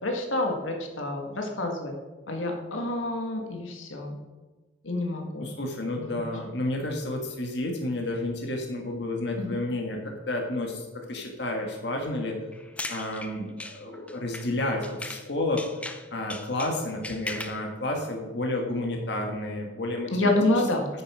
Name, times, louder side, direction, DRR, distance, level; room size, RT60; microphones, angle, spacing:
voice 1, 0.0-1.9 2.3-4.2 4.8-5.5 6.0-6.3 9.4-9.6 20.1-20.9, left 2 dB, 90° left, 2 dB, 1.8 m, -28 dB
voice 2, 5.4-10.0 10.3-12.4 12.9-15.7 16.1-20.3, left 1 dB, 60° left, 1 dB, 1.7 m, -31 dB
sound 1, 12.5-15.3 15.6-17.7, left 2 dB, 5° left, 0.5 m, -38 dB
9.4 x 6.9 x 6.2 m, 1.3 s
head